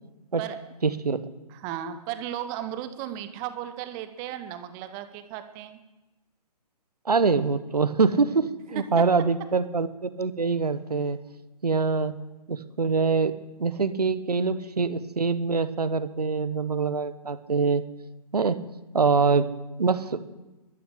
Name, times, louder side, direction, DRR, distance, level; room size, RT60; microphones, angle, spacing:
voice 1, 0.8-1.3 7.0-11.2 11.6-12.1 12.5-13.3 13.6-17.8 18.3-18.6 18.9-19.5 19.8-20.2, right 4 dB, 70° right, 14 dB, 1.2 m, -24 dB
voice 2, 1.5-5.8 8.7-9.3, right 10 dB, 15° right, 10 dB, 0.8 m, -35 dB
13.0 x 13.0 x 8.0 m, 1.1 s
figure-of-eight pair, 135°, 21 cm